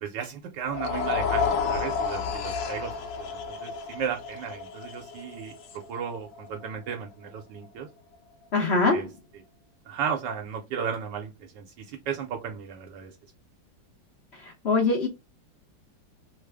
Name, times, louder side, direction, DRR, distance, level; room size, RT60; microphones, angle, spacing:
voice 1, 0.0-5.6 5.9-7.9 8.9-9.1 9.9-13.1, right 7 dB, 75° right, 1.2 m, -34 dB
sound 1, 0.6-6.9, left 5 dB, 75° left, 1.2 m, -31 dB
voice 2, 8.5-9.1 14.4-15.1, left 3 dB, 50° left, 0.8 m, -23 dB
3.2 x 2.0 x 3.4 m
omnidirectional pair, 2.0 m